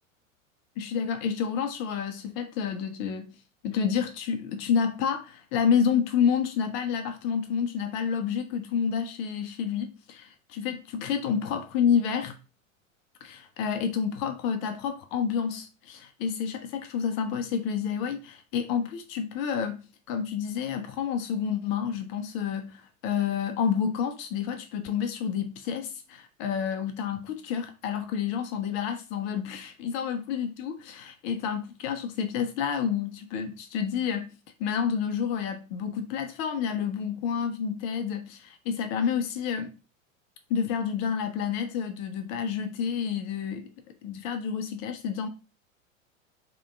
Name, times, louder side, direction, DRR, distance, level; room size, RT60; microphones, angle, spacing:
voice 1, 0.8-3.3 3.6-12.4 13.2-19.8 20.1-34.3 34.6-39.7 40.5-43.7 44.0-45.3, left 7 dB, 45° left, 0.7 m, -29 dB
3.6 x 2.9 x 3.5 m
hypercardioid pair, 90°, 40 cm